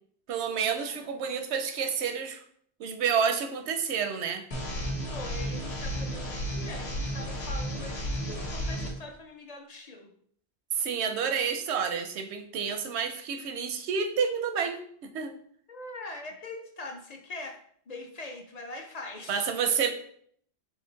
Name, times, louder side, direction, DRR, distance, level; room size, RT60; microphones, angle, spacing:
voice 1, 0.3-2.4 2.8-4.4 10.7-15.4 19.3-19.9, right 6 dB, 85° right, 8 dB, 0.9 m, -29 dB
sound 1, 4.5-8.9, equal, 75° left, 1.3 m, -33 dB
voice 2, 5.1-10.1 15.7-17.6 17.9-19.5, left 2 dB, 45° left, 3 dB, 0.6 m, -42 dB
4.4 x 3.0 x 3.8 m, 0.63 s
omnidirectional pair, 1.1 m